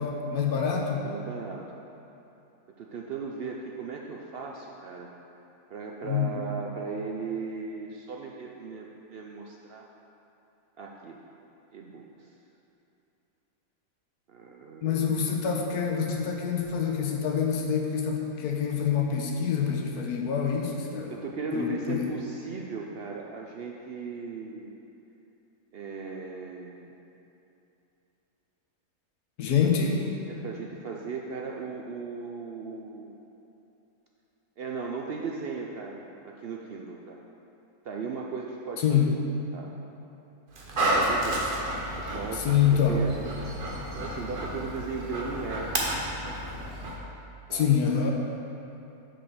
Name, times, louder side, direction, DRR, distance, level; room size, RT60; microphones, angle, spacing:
voice 1, 0.0-1.0 6.0-6.4 14.8-21.1 21.5-22.1 29.4-30.0 38.8-39.1 42.3-43.0 47.5-48.1, left 7 dB, 85° left, 1 dB, 1.4 m, -26 dB
voice 2, 1.0-1.6 2.8-5.1 5.7-9.9 10.8-11.2 11.7-12.3 14.3-15.4 21.1-24.8 25.7-26.9 30.3-33.2 34.6-37.2 37.8-39.2 39.5-39.8 40.8-41.5 41.9-43.2 43.4-43.6 43.9-45.9 47.5-47.8, right 4 dB, 70° right, -1 dB, 0.5 m, -37 dB
Dog, 40.5-47.0, right 1 dB, 40° right, 1.0 m, -31 dB
6.4 x 5.0 x 6.1 m, 2.9 s
omnidirectional pair, 1.6 m